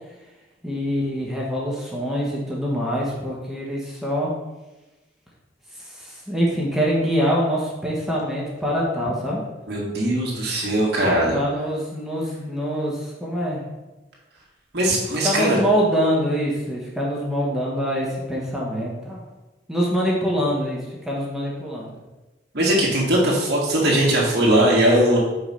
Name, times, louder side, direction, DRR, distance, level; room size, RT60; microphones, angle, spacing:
voice 1, 0.6-4.3 5.8-9.4 11.3-13.6 15.2-19.2 19.7-22.0, equal, ahead, -5 dB, 1.2 m, -24 dB
voice 2, 9.7-11.4 14.7-15.6 22.5-25.2, right 1 dB, 60° right, -4 dB, 1.8 m, -19 dB
5.1 x 4.9 x 5.6 m, 1.1 s
head